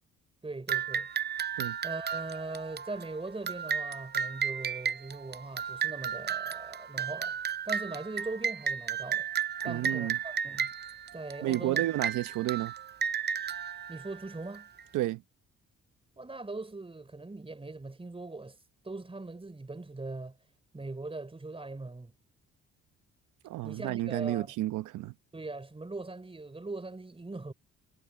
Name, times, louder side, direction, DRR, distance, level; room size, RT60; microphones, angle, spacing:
voice 1, 0.4-1.1 1.8-7.4 7.7-9.3 9.6-10.7 11.1-11.8 13.9-14.7 16.2-18.6 18.8-20.4 20.7-22.1 23.6-24.5 25.3-27.5, right 2 dB, 20° right, 4.1 m, -40 dB
sound 1, 0.7-14.8, right 7 dB, 35° right, 0.6 m, -34 dB
voice 2, 9.7-10.2 11.4-12.7 14.9-15.2 23.4-25.1, right 15 dB, 90° right, 1.0 m, -31 dB
cardioid pair, 90°, 30 cm